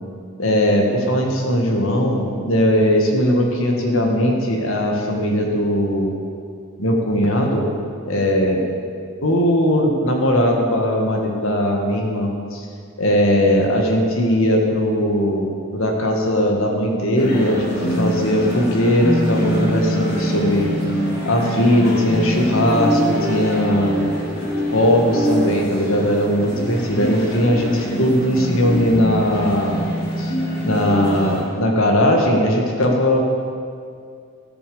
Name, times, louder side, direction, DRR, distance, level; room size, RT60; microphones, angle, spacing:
voice 1, 0.4-6.1 6.8-7.7 8.0-8.6 9.2-12.6 13.0-15.5 15.7-20.7 21.2-24.0 24.7-29.8 30.2-30.3 30.6-33.2, equal, 75° left, 1 dB, 1.8 m, -19 dB
sound 1, 17.2-31.4, equal, 50° left, 2.7 m, -24 dB
13.5 x 7.1 x 6.9 m, 2.3 s
head